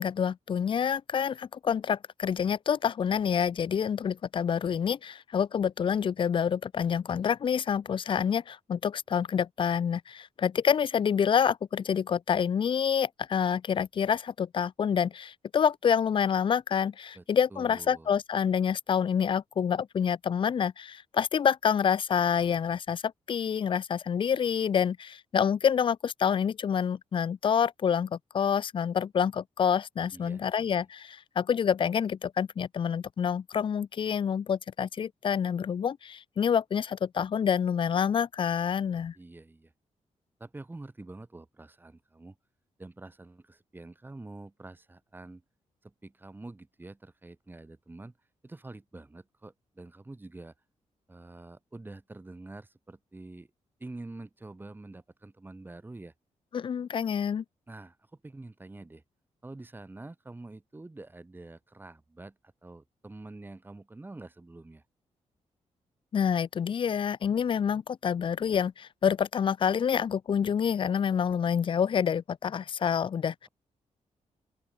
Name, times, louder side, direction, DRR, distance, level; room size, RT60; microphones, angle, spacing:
voice 1, 0.0-39.1 56.5-57.4 66.1-73.5, left 7 dB, 45° left, 0.5 m, -27 dB
voice 2, 17.5-18.1 30.1-30.8 39.1-39.7 40.4-42.4 42.8-45.4 45.8-48.1 48.4-50.5 51.1-53.5 53.8-56.1 57.7-59.0 59.4-64.8, right 2 dB, 15° right, 5.6 m, -46 dB
open air
wide cardioid pair, 140°, 12 cm